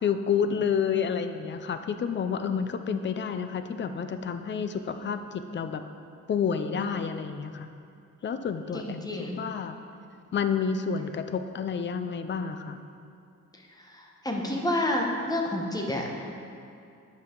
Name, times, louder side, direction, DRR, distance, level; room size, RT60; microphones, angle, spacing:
voice 1, 0.0-5.8 6.3-7.7 8.2-9.1 9.4-9.8 10.3-12.8, left 6 dB, 35° left, 9 dB, 0.4 m, -29 dB
voice 2, 8.7-9.4 13.5-16.3, left 1 dB, 10° left, 0 dB, 1.0 m, -30 dB
9.5 x 5.6 x 3.7 m, 2.5 s
cardioid pair, 110°, 31 cm